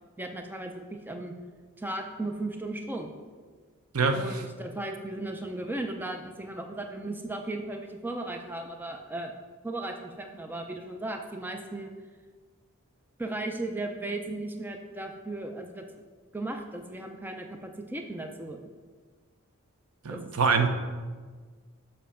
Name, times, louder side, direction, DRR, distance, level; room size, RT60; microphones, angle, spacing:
voice 1, 0.2-1.3 1.8-3.1 4.1-9.3 9.6-11.9 13.2-16.0 16.3-18.6 20.1-20.3, right 2 dB, 10° right, 4 dB, 0.4 m, -36 dB
voice 2, 20.0-20.7, right 5 dB, 80° right, 7 dB, 0.7 m, -24 dB
7.4 x 5.5 x 5.6 m, 1.5 s
head